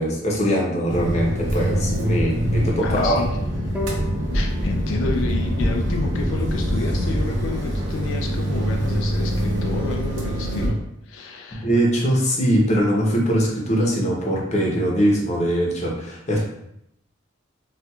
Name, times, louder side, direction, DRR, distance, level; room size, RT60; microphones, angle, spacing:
voice 1, 0.0-3.2 11.6-16.4, equal, 35° left, -2 dB, 0.8 m, -21 dB
sound 1, 0.9-10.7, equal, 75° right, 0.7 m, -24 dB
voice 2, 2.8-3.3 4.3-10.8 11.1-11.7, left 3 dB, 85° left, 2 dB, 0.4 m, -30 dB
sound 2, 3.7-7.0, left 2 dB, 5° right, 0.4 m, -36 dB
4.2 x 2.4 x 2.3 m, 0.78 s
head